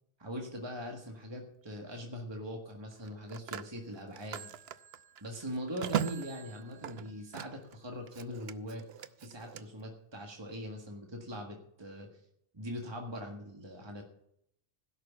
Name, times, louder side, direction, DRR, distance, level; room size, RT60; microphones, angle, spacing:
voice 1, 0.2-4.5 5.2-12.1 12.5-14.0, equal, 25° right, 1 dB, 1.7 m, -42 dB
Telephone, 0.7-1.0 2.9-7.8 8.1-9.6, right 9 dB, 70° right, 0.9 m, -40 dB
16.0 x 6.6 x 8.3 m, 0.74 s
omnidirectional pair, 1.2 m